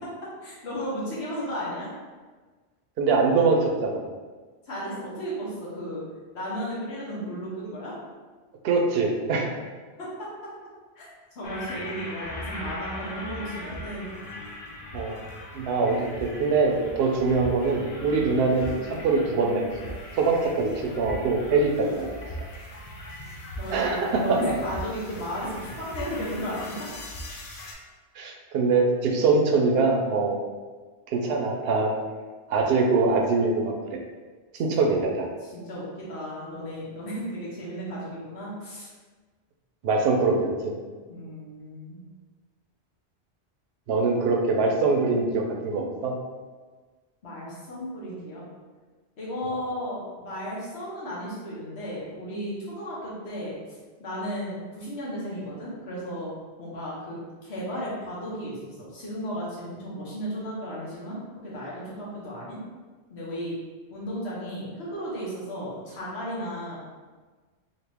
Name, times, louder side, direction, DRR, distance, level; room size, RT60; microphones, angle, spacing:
voice 1, 0.0-1.9 4.6-6.0 6.3-8.0 10.0-10.3 11.0-11.1 11.3-14.1 23.6-26.9 34.7-35.0 35.4-38.9 41.1-42.0 47.2-48.4 49.2-53.6 54.0-56.3 56.6-62.6 63.1-63.6 63.9-66.8, equal, 75° left, -7 dB, 1.3 m, -34 dB
voice 2, 3.0-4.0 8.6-9.5 14.9-15.2 15.5-19.7 20.2-22.2 23.7-24.4 28.2-30.4 31.1-31.9 32.5-33.7 34.6-35.1 39.8-40.7 43.9-46.1, right 3 dB, 70° right, 2 dB, 0.8 m, -23 dB
sound 1, 11.4-27.7, left 1 dB, 60° left, 0.7 m, -39 dB
2.9 x 2.6 x 3.4 m, 1.4 s
omnidirectional pair, 1.1 m